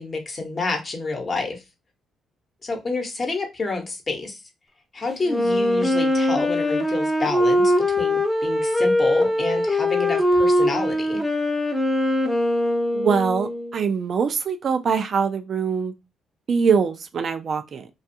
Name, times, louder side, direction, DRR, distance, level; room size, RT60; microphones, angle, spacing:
voice 1, 0.0-1.6 2.6-4.4 4.9-11.2, left 3 dB, 35° left, 0.9 m, -28 dB
Wind instrument woodwind instrument, 5.2-13.8, left 1 dB, ahead, 0.5 m, -21 dB
voice 2, 12.9-15.9 16.5-17.9, right 6 dB, 55° right, 0.4 m, -23 dB
2.4 x 2.3 x 2.6 m
cardioid pair, 90°, 0 cm